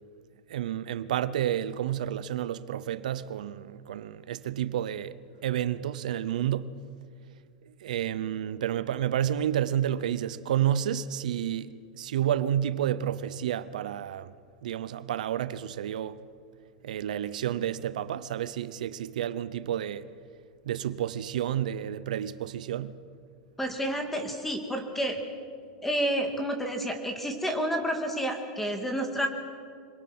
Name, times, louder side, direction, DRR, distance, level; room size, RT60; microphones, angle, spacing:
voice 1, 0.5-5.1 5.4-6.7 7.8-14.3 14.6-16.2 16.8-20.0 20.6-23.0, right 10 dB, 85° right, 0.8 m, -30 dB
voice 2, 23.6-25.2 25.8-29.3, equal, 5° left, 2.3 m, -30 dB
26.0 x 22.0 x 6.1 m
supercardioid pair, 155°, 4 cm